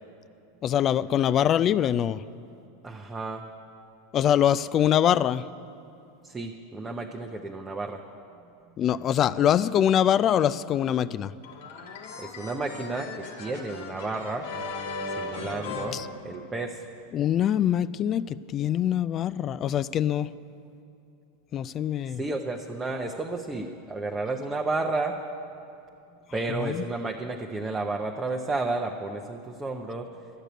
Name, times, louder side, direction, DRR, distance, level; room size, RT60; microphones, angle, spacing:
voice 1, 0.6-2.2 4.1-5.4 8.8-11.3 15.9-16.1 17.1-20.3 21.5-22.2 26.6-26.8, left 10 dB, 35° left, 16 dB, 0.3 m, -24 dB
voice 2, 2.8-3.5 6.2-8.0 12.2-14.5 15.2-16.0 16.2-16.8 22.2-25.2 26.3-30.1, right 3 dB, 15° right, 1 dB, 0.7 m, -32 dB
sound 1, 11.4-16.8, left 3 dB, 75° left, 1.4 m, -37 dB
12.0 x 6.7 x 9.1 m, 2.7 s
hypercardioid pair, 110°, 0 cm